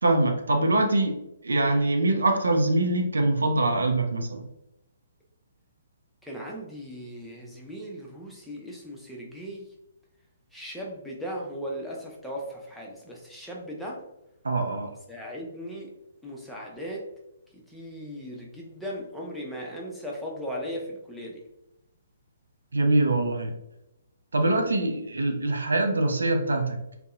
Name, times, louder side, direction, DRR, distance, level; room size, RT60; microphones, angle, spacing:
voice 1, 0.0-1.2 1.4-4.5 14.4-14.9 22.7-23.5 24.3-26.8, right 2 dB, 75° right, 4 dB, 0.4 m, -23 dB
voice 2, 6.2-9.7 10.5-14.0 15.1-15.9 16.2-17.1 17.5-21.4, equal, ahead, -3 dB, 0.5 m, -37 dB
2.6 x 2.0 x 2.3 m, 0.87 s
figure-of-eight pair, 130°, 0 cm